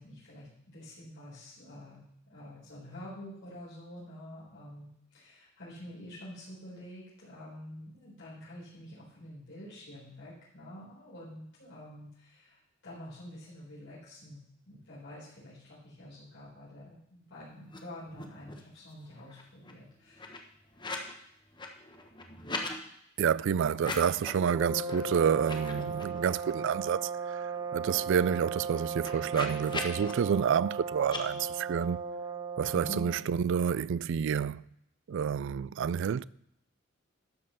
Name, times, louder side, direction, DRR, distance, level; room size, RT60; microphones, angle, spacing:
voice 1, 0.0-14.4 14.7-20.5 32.7-33.0, left 1 dB, 60° left, 4.4 m, -47 dB
sound 1, 17.6-17.8 18.0-18.7 19.1-21.1 21.4-22.8 23.7-24.4 24.8-25.0 25.3-26.7 27.1-27.2 27.4-30.1 31.0-31.2, left 3 dB, 25° left, 1.3 m, -41 dB
voice 2, 23.2-32.0 32.6-34.6 35.1-36.2, right 7 dB, 65° right, 0.3 m, -29 dB
sound 2, 24.4-33.3, right 4 dB, 15° right, 0.6 m, -37 dB
12.5 x 5.4 x 7.0 m
head